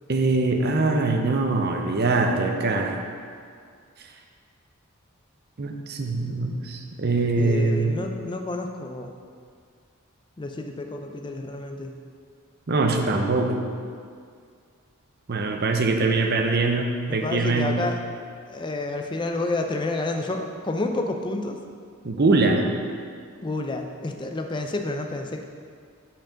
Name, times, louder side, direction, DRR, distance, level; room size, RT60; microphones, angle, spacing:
voice 1, 0.1-3.0 5.6-8.0 12.7-13.6 15.3-17.8 22.0-22.7, right 3 dB, 45° right, 3 dB, 0.6 m, -23 dB
voice 2, 7.4-9.1 10.4-11.9 17.1-18.0 18.5-21.6 23.4-25.4, left 2 dB, 20° left, 4 dB, 0.4 m, -29 dB
6.1 x 4.6 x 5.1 m, 2.1 s
head